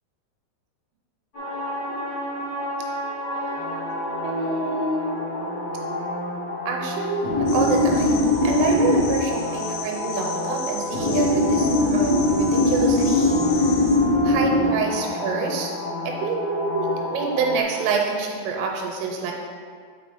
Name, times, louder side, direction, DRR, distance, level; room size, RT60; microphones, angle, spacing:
sound 1, 1.3-17.6, left 2 dB, 60° left, 1.2 m, -24 dB
voice 1, 4.2-5.2 6.7-13.4 13.6-13.9 14.2-15.7 16.1-19.3, right 4 dB, 85° right, 1 dB, 3.3 m, -27 dB
sound 2, 7.5-14.0, left 5 dB, 80° left, 2.3 m, -36 dB
6.9 x 5.5 x 4.2 m, 2.1 s
omnidirectional pair, 5.8 m